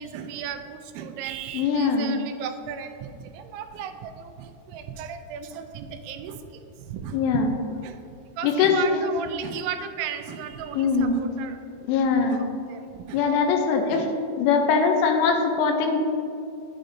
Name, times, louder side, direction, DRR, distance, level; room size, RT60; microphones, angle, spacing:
voice 1, 0.0-6.4 6.9-7.2 7.8-8.0 8.4-11.6 12.3-12.8 13.1-13.2 13.9-14.0, right 8 dB, 85° right, 8 dB, 2.9 m, -35 dB
voice 2, 1.5-2.1 7.1-7.5 8.4-9.1 10.7-11.2 11.9-12.5 13.1-14.1 14.4-16.0, left 5 dB, 80° left, 4 dB, 2.8 m, -22 dB
10.0 x 8.7 x 2.7 m, 2.6 s
omnidirectional pair, 5.3 m